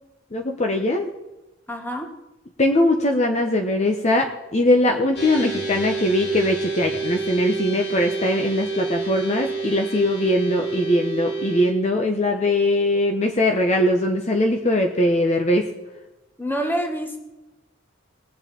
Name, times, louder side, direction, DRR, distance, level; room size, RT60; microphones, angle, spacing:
voice 1, 0.3-1.1 2.6-15.7, left 1 dB, 35° left, 3 dB, 0.9 m, -21 dB
voice 2, 1.7-2.1 16.4-17.2, equal, 10° left, 4 dB, 1.5 m, -27 dB
sound 1, 5.1-11.7, right 4 dB, 55° left, 3.4 m, -28 dB
20.5 x 7.8 x 4.3 m, 1.0 s
head